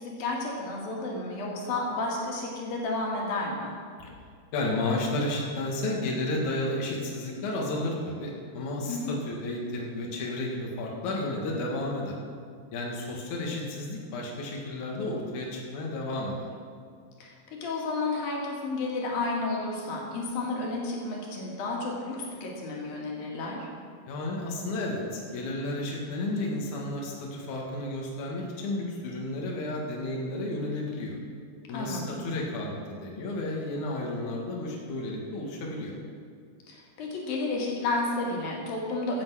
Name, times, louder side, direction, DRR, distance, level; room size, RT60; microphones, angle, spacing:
voice 1, 0.0-3.7 8.9-9.2 17.2-23.7 31.7-32.2 36.7-39.2, left 2 dB, 85° left, -2 dB, 3.9 m, -32 dB
voice 2, 4.5-12.2 12.7-16.5 24.1-31.2 31.7-35.9, left 2 dB, 65° left, -2 dB, 3.0 m, -32 dB
16.0 x 8.0 x 6.2 m, 2.2 s
omnidirectional pair, 4.0 m